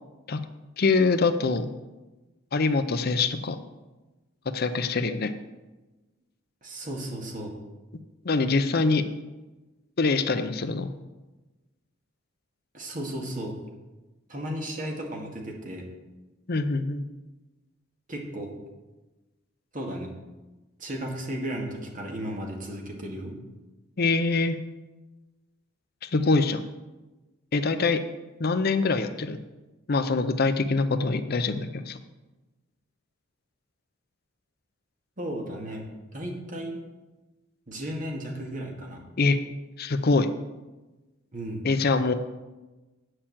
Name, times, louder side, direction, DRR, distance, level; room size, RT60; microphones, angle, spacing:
voice 1, 0.8-1.7 2.5-3.6 4.5-5.3 8.2-9.1 10.0-10.9 16.5-17.0 24.0-24.6 26.0-26.6 27.5-28.0 28.4-29.4 29.9-32.0 39.2-39.4 39.8-40.3 41.6-42.1, left 3 dB, 50° left, 10 dB, 0.6 m, -24 dB
voice 2, 6.6-7.6 12.7-13.5 14.3-15.9 18.1-18.5 19.7-20.1 20.8-23.3 35.2-35.9 36.1-36.8 37.7-39.0 41.3-41.6, right 1 dB, 40° right, 0 dB, 2.0 m, -34 dB
8.7 x 6.7 x 7.3 m, 1.1 s
head